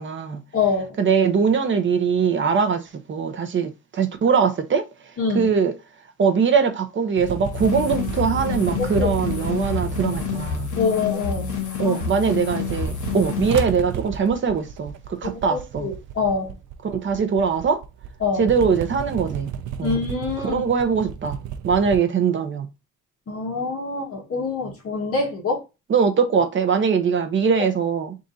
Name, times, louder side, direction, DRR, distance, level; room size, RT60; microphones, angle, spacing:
voice 1, 0.0-0.4 1.0-4.9 5.3-5.7 6.2-10.7 11.8-15.9 16.8-17.8 18.4-19.5 19.8-20.0 20.4-21.4 21.6-22.7 25.9-28.2, right 6 dB, 40° right, 0.7 m, -21 dB
voice 2, 0.5-1.0 5.2-5.5 8.8-9.1 10.8-11.6 11.8-12.0 15.2-16.5 18.2-18.5 19.8-20.6 23.3-25.6 27.6-27.7, left 4 dB, 50° left, 1.5 m, -25 dB
sound 1, 7.2-11.9 12.2-22.0, right 8 dB, 80° right, 0.5 m, -33 dB
sound 2, 7.5-13.6, left 7 dB, 75° left, 1.4 m, -28 dB
3.6 x 2.7 x 3.9 m
wide cardioid pair, 175°, 30 cm